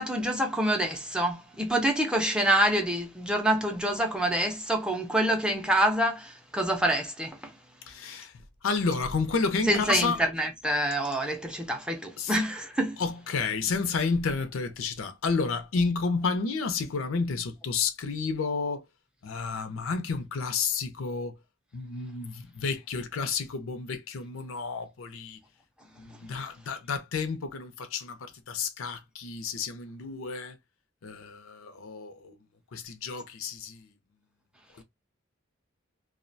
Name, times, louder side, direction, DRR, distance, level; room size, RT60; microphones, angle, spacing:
voice 1, 0.0-7.4 9.7-13.0, right 1 dB, 5° right, 0.4 m, -26 dB
voice 2, 7.9-8.3 8.6-10.2 12.2-12.3 13.0-18.8 19.2-21.3 21.7-25.4 26.0-30.6 31.0-32.4 32.7-33.9 34.8-34.9, left 4 dB, 85° left, 0.5 m, -31 dB
2.3 x 2.1 x 2.5 m
head